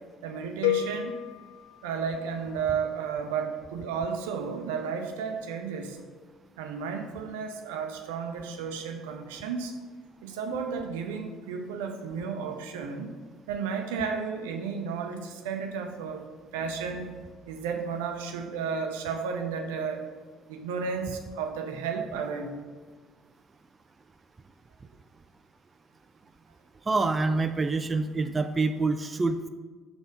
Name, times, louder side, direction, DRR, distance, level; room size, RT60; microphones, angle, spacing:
voice 1, 0.2-1.2 1.8-6.0 6.6-9.7 10.2-13.1 13.5-20.1 20.5-22.6, right 6 dB, 80° right, 4 dB, 0.6 m, -33 dB
sound 1, 0.6-2.7, left 11 dB, 80° left, 0.3 m, -32 dB
voice 2, 26.9-29.5, right 3 dB, 30° right, 8 dB, 0.4 m, -26 dB
5.8 x 4.1 x 5.2 m, 1.4 s
hypercardioid pair, 60°, 0 cm